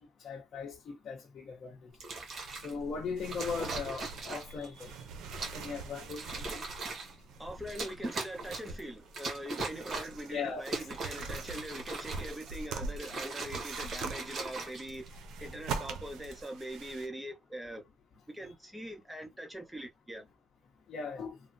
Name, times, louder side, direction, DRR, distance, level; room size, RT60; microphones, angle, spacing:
voice 1, 0.2-1.8 2.6-5.1 5.5-6.2 6.5-6.6 10.3-10.6 20.9-21.4, left 5 dB, 60° left, 0.7 m, -38 dB
sound 1, 1.9-2.7 3.3-4.7 5.3-5.7 6.0-7.1 7.7-8.8 9.1-10.2 10.6-12.5 12.9-15.3 16.0-16.4, right 3 dB, 50° right, 1.3 m, -40 dB
sound 2, 2.4-17.1, right 4 dB, 90° right, 0.5 m, -44 dB
voice 2, 7.4-17.8 18.3-20.3, right 1 dB, 10° right, 0.8 m, -42 dB
3.2 x 2.1 x 2.5 m
cardioid pair, 90°, 0 cm